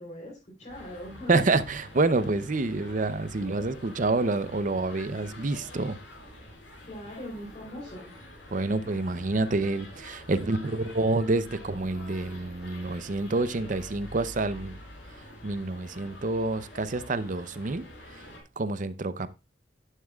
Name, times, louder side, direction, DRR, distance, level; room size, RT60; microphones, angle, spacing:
voice 1, 0.0-1.5 6.9-8.1, equal, 35° left, 3.7 m, -41 dB
sound 1, 0.7-18.4, left 1 dB, 75° left, 5.1 m, -47 dB
voice 2, 1.3-6.0 8.5-14.8 15.4-17.9 18.2-18.3 18.6-19.3, right 2 dB, 40° right, 0.6 m, -28 dB
11.0 x 9.6 x 2.3 m
head